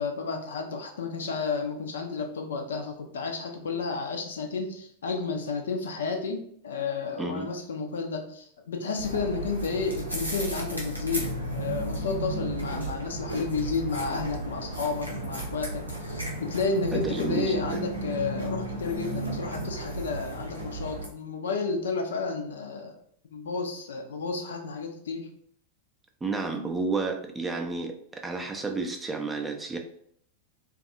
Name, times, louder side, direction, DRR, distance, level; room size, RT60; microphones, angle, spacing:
voice 1, 0.0-23.0 23.2-25.3, left 4 dB, 65° left, 4 dB, 0.4 m, -31 dB
sound 1, 9.0-21.1, right 1 dB, 90° right, 0.6 m, -34 dB
voice 2, 16.9-17.8 26.2-29.8, right 3 dB, 10° right, 4 dB, 0.4 m, -31 dB
2.6 x 2.3 x 2.6 m, 0.65 s
figure-of-eight pair, 90°, 0 cm